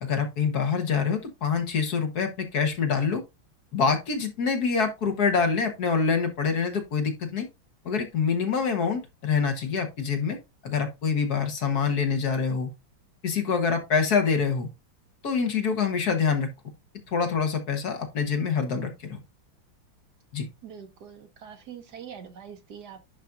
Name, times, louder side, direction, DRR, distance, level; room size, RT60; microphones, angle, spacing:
voice 1, 0.0-3.2 3.7-7.5 7.8-10.4 10.6-12.7 13.2-14.7 15.2-16.5 17.1-19.2 20.3-20.4, left 5 dB, 55° left, 1.6 m, -25 dB
voice 2, 20.6-23.0, right 8 dB, 60° right, 1.4 m, -43 dB
10.5 x 4.1 x 2.5 m
omnidirectional pair, 2.1 m